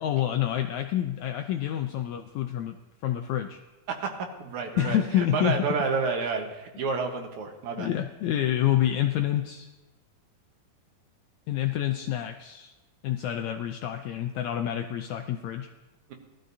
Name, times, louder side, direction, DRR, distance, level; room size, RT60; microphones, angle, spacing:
voice 1, 0.0-2.8 3.0-3.6 4.7-5.6 7.8-9.7 11.5-12.7 13.0-15.7, left 11 dB, 90° left, 6 dB, 1.6 m, -28 dB
voice 2, 3.9-7.9, right 4 dB, 65° right, 3 dB, 2.4 m, -30 dB
19.5 x 13.0 x 2.7 m, 1.1 s
omnidirectional pair, 3.9 m